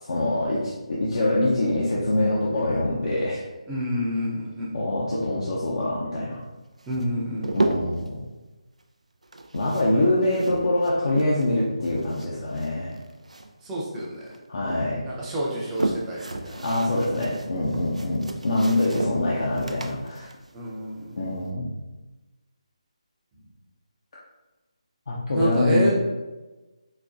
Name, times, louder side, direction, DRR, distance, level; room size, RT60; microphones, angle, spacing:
voice 1, 0.0-3.4 4.7-6.4 7.5-8.2 9.5-13.0 14.5-15.0 16.6-20.3 21.2-21.7 25.1-25.9, left 1 dB, 60° left, -4 dB, 0.5 m, -24 dB
voice 2, 3.7-4.7 6.9-7.6 13.6-14.2 15.1-16.6 20.5-21.2 25.3-25.9, equal, 10° right, -5 dB, 0.6 m, -28 dB
sound 1, 6.8-8.1 9.2-11.6 11.8-13.7 14.0-14.8 15.4-21.4, right 2 dB, 85° right, 0.3 m, -33 dB
4.0 x 2.2 x 2.5 m, 1.1 s
figure-of-eight pair, 155°, 4 cm